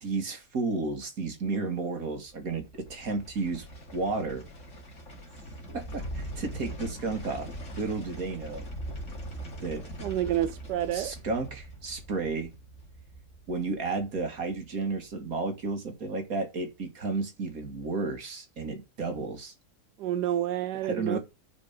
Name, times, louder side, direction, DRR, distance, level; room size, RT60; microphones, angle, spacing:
voice 1, 0.0-3.7 3.9-4.4 5.7-7.5 7.8-8.7 9.6-9.8 10.9-12.5 13.5-19.5 20.8-21.2, right 3 dB, 55° right, 2.5 m, -32 dB
sound 1, 2.3-15.4 15.8-15.9, right 1 dB, 45° left, 2.5 m, -42 dB
voice 2, 10.0-11.1 20.0-21.2, right 11 dB, 85° right, 1.3 m, -29 dB
10.5 x 5.2 x 5.2 m
omnidirectional pair, 1.8 m